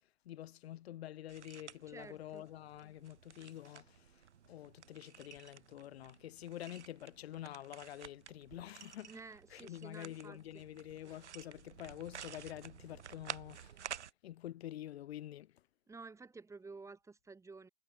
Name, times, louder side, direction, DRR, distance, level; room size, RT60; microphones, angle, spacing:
voice 1, 0.2-9.2 9.5-13.9 14.2-15.6, left 13 dB, 65° left, 3.1 m, -48 dB
sound 1, 1.3-14.1, right 8 dB, 85° right, 7.6 m, -52 dB
voice 2, 1.9-2.5 9.1-10.6 15.9-17.7, right 4 dB, 10° right, 5.3 m, -52 dB
hypercardioid pair, 140°, 34 cm